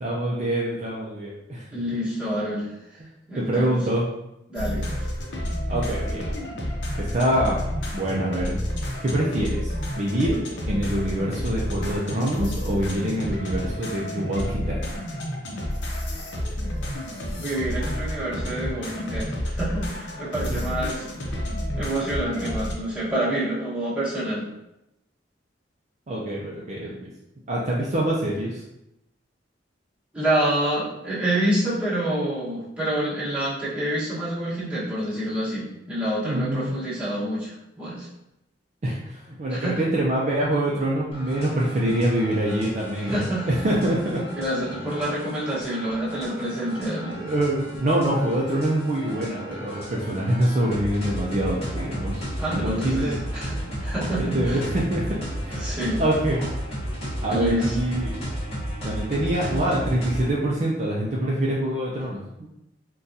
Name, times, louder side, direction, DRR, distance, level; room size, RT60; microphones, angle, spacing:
voice 1, 0.0-1.7 3.3-4.1 5.7-6.3 7.0-8.6 9.0-10.4 10.7-14.8 20.5-20.6 26.1-27.1 27.5-28.6 36.2-36.7 38.8-44.2 47.2-52.3 52.5-53.2 54.2-55.1 55.4-55.7 56.0-56.5 57.2-58.3 58.8-62.5, right 1 dB, 40° right, -4 dB, 0.4 m, -25 dB
voice 2, 1.7-2.7 3.3-3.8 4.5-4.9 17.3-21.0 21.7-24.5 30.1-38.1 39.5-39.8 43.0-43.5 44.4-47.1 52.4-54.6 55.6-56.0 57.3-57.7, right 1 dB, 5° right, -10 dB, 1.2 m, -27 dB
sound 1, 4.5-22.7, equal, 70° left, 0.7 m, -30 dB
sound 2, 41.1-60.3, equal, 30° left, 1.1 m, -33 dB
3.9 x 2.3 x 2.6 m, 0.86 s
head